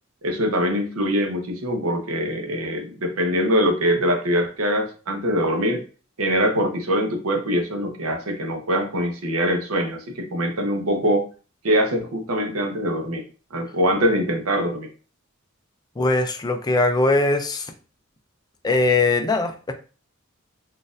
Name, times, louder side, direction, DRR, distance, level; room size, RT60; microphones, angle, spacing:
voice 1, 0.2-5.8 6.2-11.3 11.6-13.2 13.5-14.9, equal, 80° right, 5 dB, 0.8 m, -23 dB
voice 2, 16.0-17.7 18.6-19.7, left 2 dB, 20° left, 6 dB, 0.4 m, -21 dB
4.0 x 2.5 x 2.5 m, 0.36 s
head